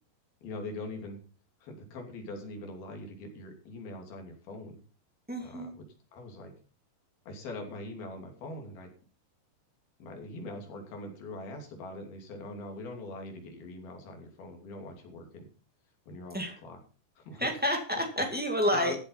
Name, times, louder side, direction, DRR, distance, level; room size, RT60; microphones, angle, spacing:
voice 1, 0.4-1.2 1.6-4.8 5.4-5.8 6.1-6.5 7.3-8.9 10.0-15.5 16.1-16.8 17.2-17.5 18.7-19.0, left 2 dB, 65° left, 3 dB, 4.7 m, -42 dB
voice 2, 5.3-5.7 16.3-16.5 17.4-19.0, equal, 10° right, 2 dB, 0.4 m, -29 dB
14.5 x 8.3 x 5.6 m, 0.38 s
omnidirectional pair, 4.8 m